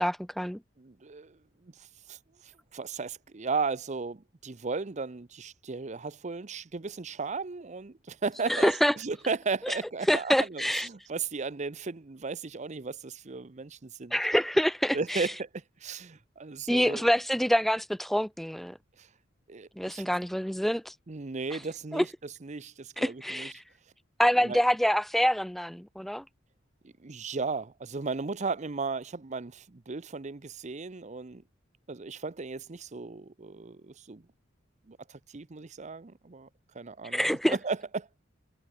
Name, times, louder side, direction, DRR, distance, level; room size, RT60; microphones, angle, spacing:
voice 1, 0.0-0.6 8.5-8.9 9.6-9.8 10.1-10.9 14.1-15.3 16.7-18.8 19.8-20.9 21.9-22.1 23.0-23.6 24.2-26.2 37.0-37.6, equal, ahead, 0.6 m, -26 dB
voice 2, 0.8-1.4 1.6-2.2 2.7-14.2 14.9-17.0 19.0-19.1 19.5-20.1 21.1-22.1 22.4-23.5 24.4-24.6 27.0-31.4 31.9-34.2 34.9-36.5 36.7-38.1, right 4 dB, 35° right, 0.7 m, -35 dB
head